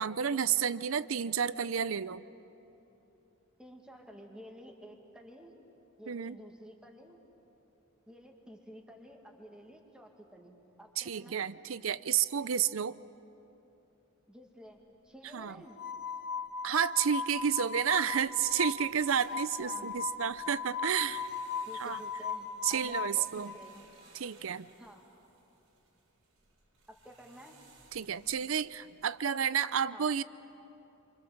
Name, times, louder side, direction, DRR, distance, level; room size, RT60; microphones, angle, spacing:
voice 1, 0.0-2.2 6.1-6.4 11.0-13.0 15.3-15.5 16.6-21.3 21.8-22.0 22.6-23.5 24.1-24.7 27.9-30.2, right 8 dB, 65° right, 16 dB, 0.6 m, -31 dB
voice 2, 3.6-5.5 6.0-7.2 8.1-11.4 14.3-15.8 19.3-19.9 21.6-23.9 24.8-25.1 27.0-27.5 29.9-30.1, equal, 5° right, 1 dB, 2.2 m, -52 dB
sound 1, 15.7-23.5, left 6 dB, 50° left, 0.9 m, -38 dB
sound 2, 17.3-29.1, right 3 dB, 85° right, 4.5 m, -62 dB
28.0 x 25.5 x 7.2 m, 3.0 s
head